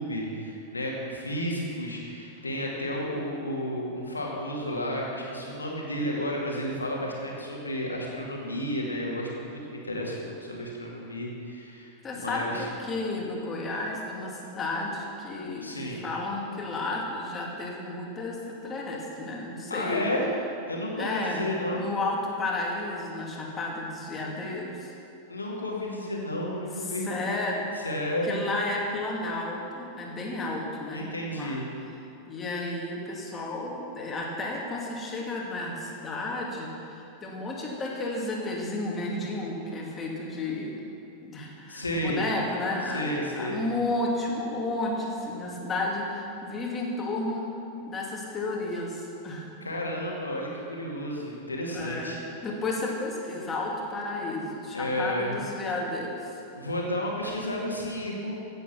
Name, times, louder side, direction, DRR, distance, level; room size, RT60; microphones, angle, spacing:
voice 1, 0.0-12.7 15.6-16.0 19.7-20.3 20.7-21.9 25.3-27.1 27.8-28.4 30.9-31.7 41.7-42.3 42.8-43.6 49.6-52.2 54.7-55.4 56.5-58.4, left 1 dB, 80° left, -2 dB, 2.2 m, -32 dB
voice 2, 12.0-20.0 21.0-21.5 21.8-24.9 26.8-27.7 28.2-31.6 32.3-40.8 41.2-47.6 47.9-49.5 51.7-56.3, left 2 dB, 20° left, -2 dB, 2.6 m, -32 dB
15.5 x 8.0 x 6.1 m, 2.7 s
figure-of-eight pair, 90°, 0 cm